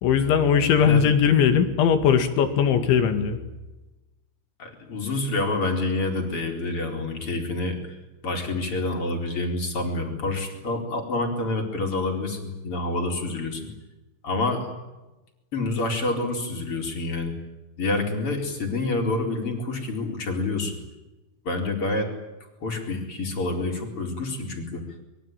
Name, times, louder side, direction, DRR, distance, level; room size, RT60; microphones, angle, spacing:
voice 1, 0.0-3.4, left 7 dB, 80° left, 8 dB, 4.7 m, -19 dB
voice 2, 4.6-8.0 8.2-13.7 14.2-14.7 15.5-17.3 17.8-20.8 21.4-22.1 22.6-24.8, left 2 dB, 30° left, 3 dB, 4.8 m, -27 dB
25.5 x 23.0 x 9.3 m, 1.1 s
omnidirectional pair, 5.3 m